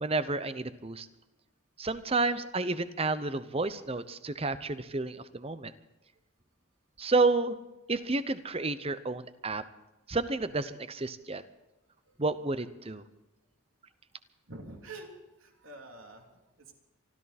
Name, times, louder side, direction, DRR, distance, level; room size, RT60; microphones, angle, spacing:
voice 1, 0.0-1.1 1.8-5.7 7.0-7.6 7.9-9.6 10.1-11.4 12.2-13.0, right 3 dB, 25° right, 13 dB, 0.8 m, -30 dB
voice 2, 14.5-15.1 15.4-16.7, right 2 dB, 75° right, 2 dB, 3.1 m, -47 dB
25.0 x 13.5 x 4.3 m, 1.0 s
head